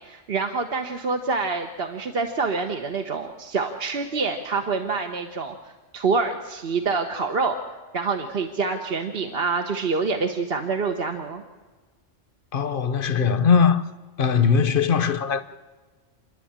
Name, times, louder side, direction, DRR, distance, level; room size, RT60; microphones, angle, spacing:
voice 1, 0.0-7.6 7.9-11.4, right 4 dB, 50° right, 1.2 m, -26 dB
voice 2, 12.5-13.8 14.2-15.4, left 6 dB, 50° left, 1.0 m, -20 dB
28.5 x 11.0 x 8.8 m
omnidirectional pair, 1.3 m